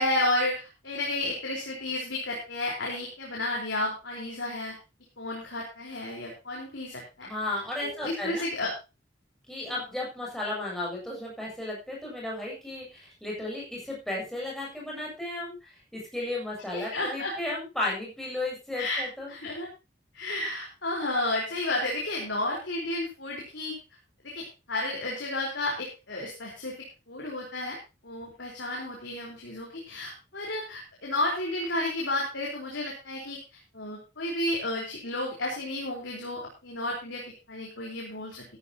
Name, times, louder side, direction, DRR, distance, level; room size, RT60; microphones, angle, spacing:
voice 1, 0.0-4.7 5.2-7.3 7.8-8.7 9.7-9.8 16.7-17.3 18.8-19.7 20.1-23.7 24.2-26.8 27.1-27.8 28.0-33.4 33.7-38.4, left 1 dB, 70° left, -2 dB, 4.5 m, -32 dB
voice 2, 7.2-8.5 9.5-19.3, left 2 dB, ahead, -4 dB, 7.8 m, -34 dB
14.5 x 13.5 x 3.0 m, 0.28 s
head